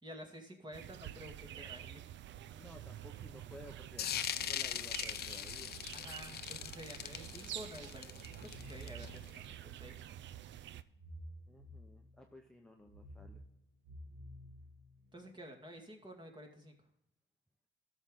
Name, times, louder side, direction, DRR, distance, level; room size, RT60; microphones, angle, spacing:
voice 1, 0.0-2.1 5.9-9.9 15.1-16.7, equal, 20° right, 2 dB, 2.2 m, -51 dB
sound 1, 0.7-10.8, right 12 dB, 65° right, 0.5 m, -49 dB
voice 2, 2.6-5.8 11.5-13.4, left 1 dB, 5° left, 1 dB, 1.0 m, -55 dB
sound 2, 4.0-9.3, left 10 dB, 55° left, 0.6 m, -40 dB
sound 3, 8.3-9.5 10.8-12.3 12.8-15.3, right 1 dB, 85° right, 4.1 m, -52 dB
13.5 x 6.4 x 3.8 m, 0.81 s
cardioid pair, 90°, 20 cm